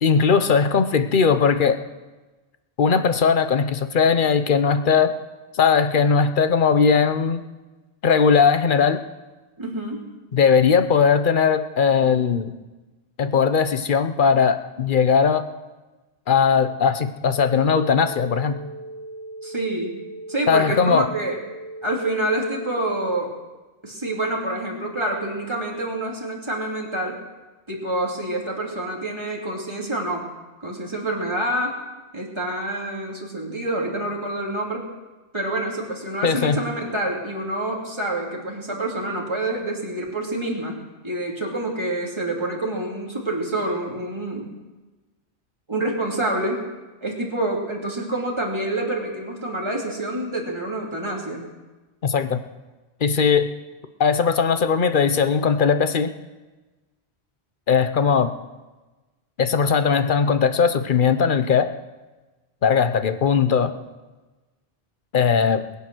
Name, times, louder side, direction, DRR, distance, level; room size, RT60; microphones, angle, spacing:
voice 1, 0.0-1.8 2.8-5.1 5.5-7.4 8.0-9.0 10.3-12.5 13.2-15.4 16.3-18.6 20.5-21.1 36.2-36.6 52.0-52.4 53.0-53.5 54.0-56.1 57.7-58.3 59.4-61.7 62.6-63.7 65.1-65.6, left 6 dB, 55° left, 10 dB, 1.0 m, -19 dB
voice 2, 9.6-10.1 19.4-20.0 20.3-21.4 21.8-23.3 23.8-27.2 27.7-30.3 30.6-31.8 32.1-34.9 35.3-44.5 45.7-46.7 47.0-51.5, right 1 dB, 25° right, -2 dB, 2.9 m, -27 dB
sound 1, 17.3-23.0, right 1 dB, 85° left, 2.4 m, -38 dB
21.0 x 8.6 x 6.2 m, 1.2 s
omnidirectional pair, 1.1 m